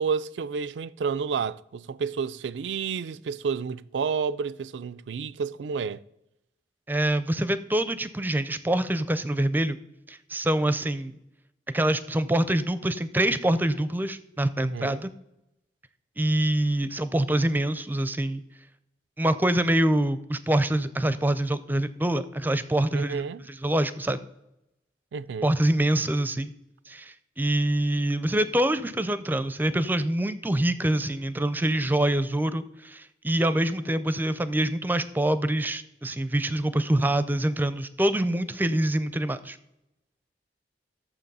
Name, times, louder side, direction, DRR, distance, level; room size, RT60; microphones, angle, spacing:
voice 1, 0.0-6.0 14.6-15.0 22.9-23.4 25.1-25.5, right 6 dB, 85° right, 0.4 m, -30 dB
voice 2, 6.9-9.8 10.1-11.2 11.7-15.1 16.2-18.4 19.2-24.2 25.4-26.5 26.9-39.6, right 1 dB, 10° right, 0.5 m, -25 dB
11.5 x 7.1 x 5.4 m
head